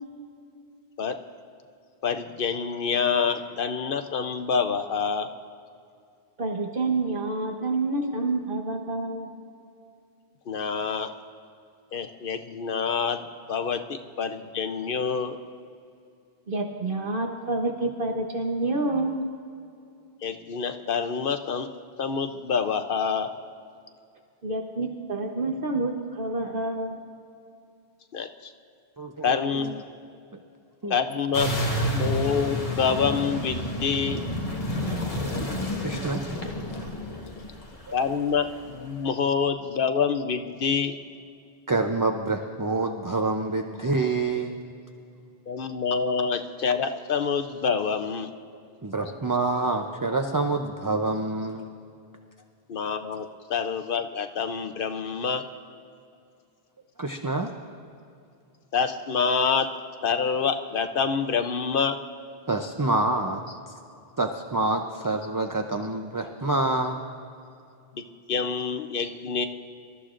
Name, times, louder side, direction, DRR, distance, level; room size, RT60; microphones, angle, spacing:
voice 1, 2.0-5.3 10.5-11.1 11.9-13.2 13.5-15.4 20.2-21.7 22.0-23.3 28.1-28.3 29.2-29.8 30.9-34.2 37.9-41.0 45.5-48.3 52.7-55.4 58.7-59.7 60.0-62.0 68.3-69.5, left 6 dB, 60° left, 7 dB, 0.8 m, -27 dB
voice 2, 6.4-9.3 16.5-19.2 24.4-27.0, right 2 dB, 60° right, 2 dB, 1.2 m, -28 dB
voice 3, 29.0-29.7 30.8-30.9 35.3-35.4 35.8-36.2 41.7-44.6 48.8-51.7 57.0-57.5 62.5-63.4 64.2-67.0, right 2 dB, 25° right, 4 dB, 0.5 m, -27 dB
sound 1, 31.3-38.7, equal, 35° left, 1.5 m, -30 dB
26.0 x 13.5 x 2.5 m, 2.5 s
omnidirectional pair, 1.1 m